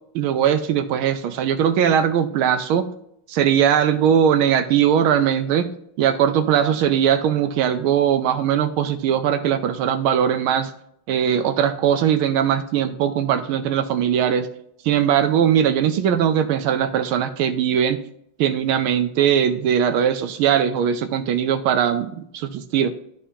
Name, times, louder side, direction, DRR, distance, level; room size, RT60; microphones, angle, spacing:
voice 1, 0.1-2.9 3.3-5.7 6.0-10.7 11.1-14.5 14.8-18.0 18.4-22.9, right 9 dB, 80° right, 9 dB, 1.5 m, -20 dB
12.5 x 5.2 x 2.8 m, 0.70 s
omnidirectional pair, 2.3 m